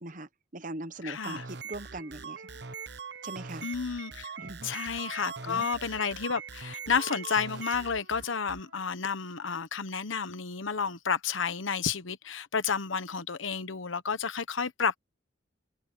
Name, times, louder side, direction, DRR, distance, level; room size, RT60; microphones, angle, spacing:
voice 1, 0.0-2.5 3.2-3.7 4.4-4.7 5.5-5.7, right 1 dB, 40° right, 1.1 m, -40 dB
Wind instrument woodwind instrument, 0.9-4.6 4.9-8.9, right 3 dB, 80° right, 4.3 m, -52 dB
voice 2, 1.0-1.4 3.6-4.3 4.6-15.0, left 6 dB, 85° left, 1.1 m, -31 dB
sound 1, 1.2-8.6, right 6 dB, 60° right, 1.2 m, -42 dB
open air
head